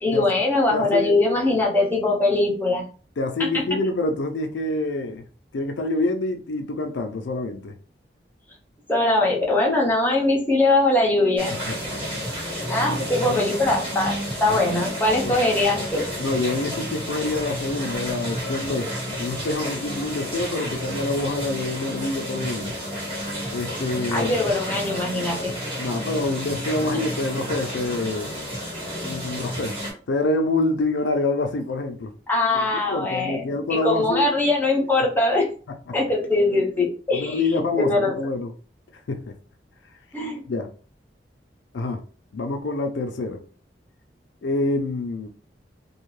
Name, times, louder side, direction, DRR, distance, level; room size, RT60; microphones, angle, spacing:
voice 1, 0.0-2.8 3.4-3.6 8.9-11.5 12.7-16.1 24.1-25.6 32.3-35.5 35.9-38.1 40.1-40.5, left 2 dB, 10° left, 0.7 m, -22 dB
voice 2, 0.7-1.2 3.2-5.2 5.5-7.7 11.9-12.0 12.4-12.6 12.8-13.4 14.5-14.6 15.2-15.4 16.2-22.8 23.5-24.3 25.8-28.3 29.0-29.7 30.1-32.1 32.5-34.3 35.9-36.0 37.1-38.5 39.1-39.4 40.5-40.7 41.7-42.0 42.3-43.4 44.4-45.3, left 2 dB, 85° left, 0.4 m, -26 dB
sound 1, 11.4-29.9, equal, 30° right, 1.4 m, -31 dB
2.5 x 2.3 x 3.1 m
head